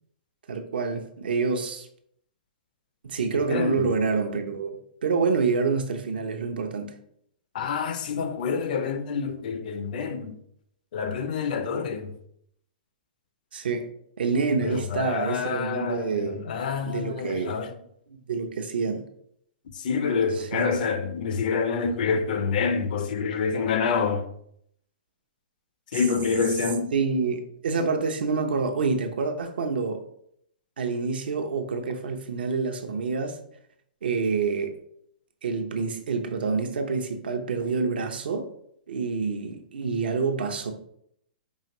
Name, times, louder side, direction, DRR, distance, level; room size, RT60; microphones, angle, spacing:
voice 1, 0.5-1.9 3.0-4.7 5.0-7.0 13.5-13.9 14.2-16.4 16.8-17.6 18.1-19.0 20.3-20.7 25.9-26.0 26.9-30.0 30.8-33.4 34.0-34.8 35.4-38.5 38.9-40.7, right 4 dB, 80° right, 0.6 m, -27 dB
voice 2, 3.3-3.9 7.5-10.3 10.9-12.1 14.6-17.7 19.8-24.3 25.9-26.9, left 5 dB, 60° left, 0.5 m, -27 dB
4.7 x 2.5 x 3.0 m
hypercardioid pair, 145°, 5 cm